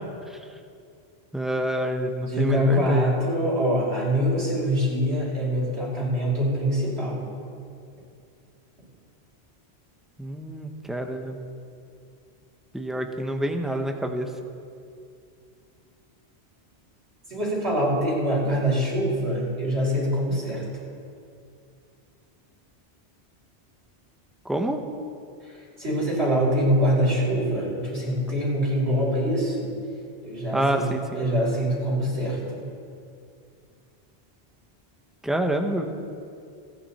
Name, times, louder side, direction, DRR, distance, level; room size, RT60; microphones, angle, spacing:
voice 1, 1.3-3.1 10.2-11.4 12.7-14.3 24.4-24.8 30.5-31.2 35.2-35.8, right 1 dB, ahead, 4 dB, 0.9 m, -27 dB
voice 2, 2.2-7.3 17.3-20.6 25.4-25.5 25.8-29.7 30.2-32.6, equal, 85° right, -6 dB, 5.4 m, -24 dB
28.5 x 9.6 x 4.3 m, 2.4 s
omnidirectional pair, 1.1 m